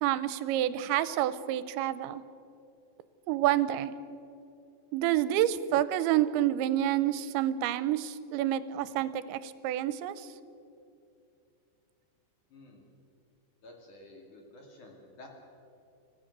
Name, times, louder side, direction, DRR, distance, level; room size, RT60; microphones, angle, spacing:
voice 1, 0.0-2.2 3.3-3.9 4.9-10.3, right 12 dB, 90° right, 14 dB, 3.0 m, -28 dB
voice 2, 12.5-12.9 13.6-15.3, left 1 dB, 45° left, 1 dB, 3.7 m, -51 dB
26.0 x 15.5 x 6.7 m, 2.6 s
omnidirectional pair, 5.2 m